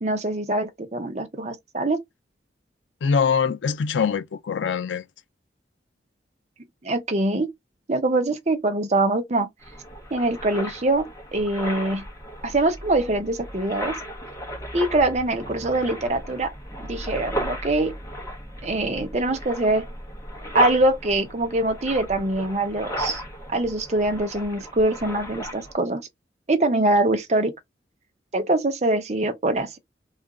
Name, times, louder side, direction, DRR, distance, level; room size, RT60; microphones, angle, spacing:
voice 1, 0.0-2.0 6.8-7.5 7.9-9.5 10.1-11.1 11.3-12.0 12.4-13.9 14.7-16.5 16.9-17.9 18.6-19.8 20.5-23.2 23.5-26.0 26.5-27.5 28.3-29.8, right 2 dB, 35° right, 0.7 m, -23 dB
voice 2, 3.0-5.0, left 6 dB, 90° left, 0.4 m, -23 dB
sound 1, 9.6-25.7, equal, 15° left, 1.0 m, -35 dB
2.9 x 2.4 x 3.6 m
head